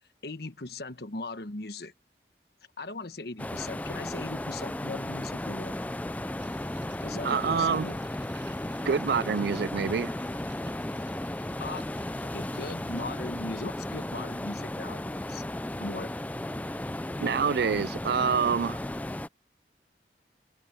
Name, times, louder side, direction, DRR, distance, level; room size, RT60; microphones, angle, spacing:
voice 1, 0.2-1.9 2.8-5.7 7.0-8.0 11.6-11.8 12.3-15.4 15.8-16.1, left 2 dB, 65° left, 1.3 m, -39 dB
sound 1, 3.4-19.3, left 1 dB, 10° left, 0.3 m, -35 dB
sound 2, 6.4-13.0, right 8 dB, 90° right, 6.1 m, -57 dB
voice 2, 7.2-7.9 8.9-10.1 17.2-18.8, right 6 dB, 65° right, 0.4 m, -26 dB
head